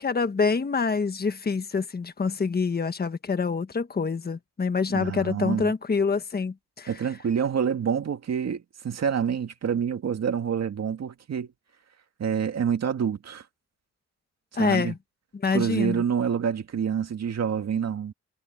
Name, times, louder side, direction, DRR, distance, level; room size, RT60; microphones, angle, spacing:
voice 1, 0.0-6.9 14.5-15.0 15.3-16.0, left 5 dB, 30° left, 1.4 m, -26 dB
voice 2, 4.9-5.7 6.9-11.5 12.2-13.4 14.5-14.9 15.5-18.1, right 7 dB, 60° right, 2.2 m, -27 dB
cardioid pair, 100°, 29 cm